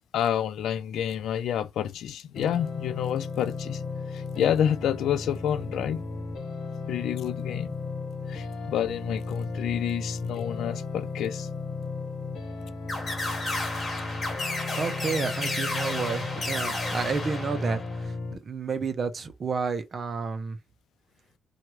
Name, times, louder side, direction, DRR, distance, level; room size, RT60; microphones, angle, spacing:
voice 1, 0.1-3.8 4.1-6.0 6.9-7.8 8.3-11.5, left 9 dB, 85° left, 0.3 m, -29 dB
sound 1, 2.4-18.3, left 3 dB, 65° left, 0.9 m, -35 dB
sound 2, 12.9-18.0, left 2 dB, 35° left, 1.2 m, -32 dB
voice 2, 14.8-20.6, right 5 dB, 40° right, 0.6 m, -31 dB
2.9 x 2.3 x 3.0 m
cardioid pair, 140°, 0 cm